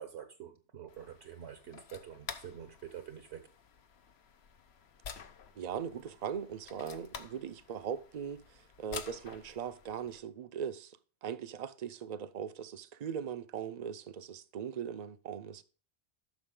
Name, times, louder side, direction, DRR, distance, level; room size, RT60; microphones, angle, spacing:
voice 1, 0.0-3.5, right 9 dB, 70° right, 1.2 m, -47 dB
sound 1, 0.9-10.2, left 6 dB, 65° left, 1.1 m, -50 dB
voice 2, 5.6-15.6, right 8 dB, 45° right, 0.7 m, -40 dB
13.0 x 6.1 x 3.8 m
omnidirectional pair, 1.2 m